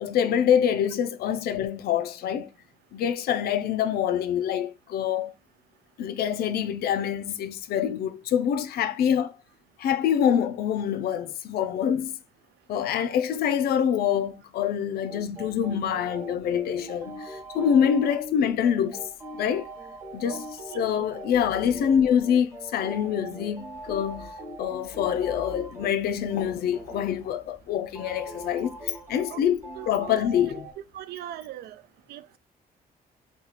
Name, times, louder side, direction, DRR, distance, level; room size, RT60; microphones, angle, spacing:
voice 1, 0.0-2.5 2.9-5.3 6.0-9.3 9.8-12.2 12.7-19.0 19.3-19.7 20.1-20.4 20.7-24.3 24.6-30.7, left 9 dB, 75° left, 0.5 m, -25 dB
sound 1, 15.1-30.7, right 1 dB, 15° right, 0.8 m, -41 dB
voice 2, 20.7-21.1 29.3-30.3 30.9-31.8 32.1-32.4, right 12 dB, 85° right, 0.4 m, -40 dB
2.9 x 2.3 x 4.0 m
cardioid pair, 170°, 16 cm